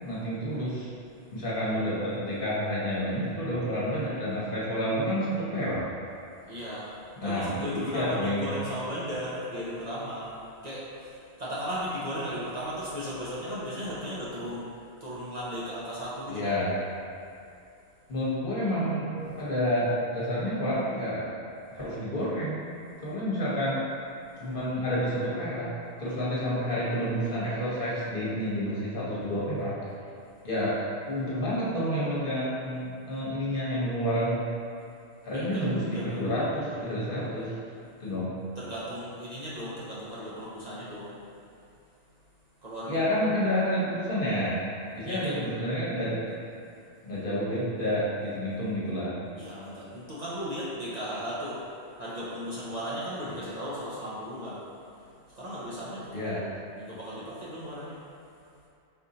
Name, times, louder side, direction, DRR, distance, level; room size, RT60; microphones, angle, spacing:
voice 1, 0.0-0.9 1.3-5.9 7.2-8.5 16.3-16.7 18.1-21.3 21.7-22.6 23.0-23.8 24.4-25.7 26.0-29.7 30.4-30.8 31.1-34.5 35.2-37.5 38.0-38.3 42.9-44.6 44.9-46.4 47.0-49.2 56.1-56.4, equal, 55° left, -8 dB, 1.1 m, -29 dB
voice 2, 6.5-7.0 7.2-10.3 10.6-14.7 15.0-16.5 35.3-36.3 38.6-41.1 42.6-43.1 45.0-45.4 49.4-51.7 52.0-54.6 55.3-56.5 56.8-58.0, equal, 45° right, -9 dB, 0.7 m, -36 dB
4.2 x 2.6 x 3.9 m, 2.5 s
omnidirectional pair, 1.1 m